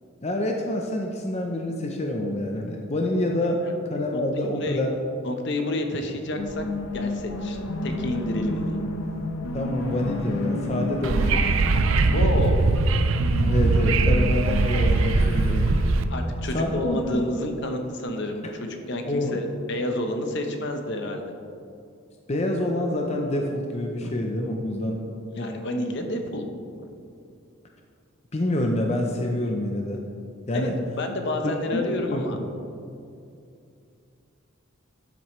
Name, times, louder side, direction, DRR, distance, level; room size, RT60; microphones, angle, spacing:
voice 1, 0.2-4.9 9.5-11.6 13.5-15.7 16.5-17.3 18.4-18.5 19.1-19.4 22.3-25.0 25.4-25.5 28.3-30.0 30.5-30.8 31.4-31.8 32.1-32.2, left 1 dB, 30° left, 1 dB, 0.6 m, -27 dB
voice 2, 5.2-6.6 6.9-8.8 12.1-12.7 16.1-21.2 24.0-24.1 25.3-26.4 26.7-26.8 30.5-30.7 31.0-32.4, left 1 dB, 60° left, 4 dB, 0.9 m, -29 dB
sound 1, 6.4-17.3, left 2 dB, 85° left, 0.8 m, -32 dB
sound 2, 9.7-16.1, right 2 dB, 30° right, 2.3 m, -47 dB
Wind / Subway metro underground, 11.0-16.0, right 3 dB, 70° right, 0.4 m, -21 dB
12.5 x 7.7 x 3.1 m, 2.5 s
head